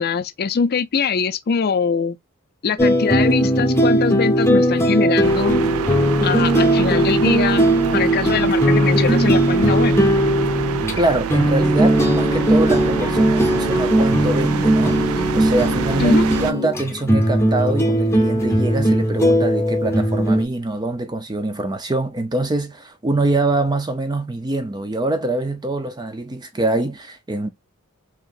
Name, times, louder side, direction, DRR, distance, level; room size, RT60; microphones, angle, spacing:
voice 1, 0.0-2.2 2.6-5.6 6.2-7.7 7.9-9.9 16.0-16.3, left 6 dB, 45° left, 0.4 m, -22 dB
sound 1, 2.8-20.4, right 1 dB, 10° left, 0.9 m, -18 dB
sound 2, 5.2-16.5, right 8 dB, 70° right, 0.4 m, -27 dB
voice 2, 11.0-27.5, right 2 dB, 20° right, 0.5 m, -24 dB
4.8 x 2.9 x 2.4 m
head